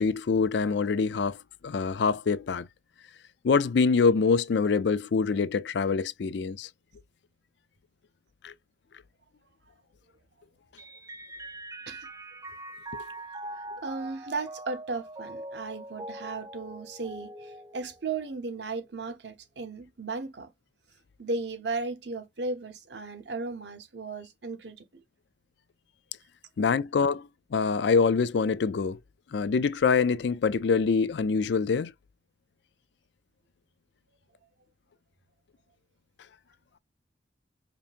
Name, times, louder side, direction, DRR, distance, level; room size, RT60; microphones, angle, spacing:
voice 1, 0.0-1.4 1.6-2.7 3.4-6.7 8.4-8.5 26.6-29.0 29.3-31.9, left 5 dB, 65° left, 0.4 m, -25 dB
Mallet percussion, 10.8-18.5, right 1 dB, 20° right, 0.4 m, -42 dB
voice 2, 13.8-20.5 21.2-24.8, right 3 dB, 65° right, 0.9 m, -35 dB
5.2 x 2.8 x 2.5 m
head